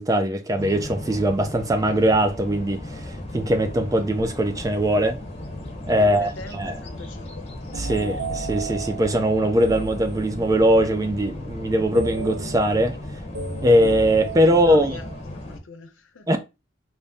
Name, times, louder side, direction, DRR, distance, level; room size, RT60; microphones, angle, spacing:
voice 1, 0.0-5.2 5.9-6.7 7.7-13.0 13.6-15.0 16.3-16.4, equal, 15° right, 0.3 m, -21 dB
sound 1, 0.6-15.6, left 1 dB, 30° left, 0.8 m, -36 dB
voice 2, 6.0-7.5 14.5-15.0 15.3-16.3, left 3 dB, 75° left, 0.7 m, -42 dB
sound 2, 7.7-10.7 11.9-15.2, right 4 dB, 80° right, 0.6 m, -34 dB
4.0 x 2.0 x 3.4 m
head